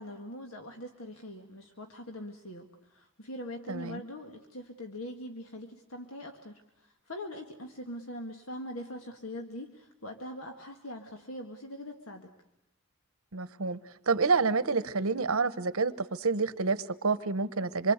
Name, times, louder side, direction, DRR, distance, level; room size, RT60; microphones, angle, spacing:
voice 1, 0.0-12.3, left 1 dB, 70° left, 4 dB, 1.8 m, -42 dB
voice 2, 3.7-4.0 13.3-13.8 14.1-17.9, right 4 dB, 70° right, 14 dB, 1.1 m, -28 dB
26.5 x 23.5 x 8.1 m, 0.84 s
head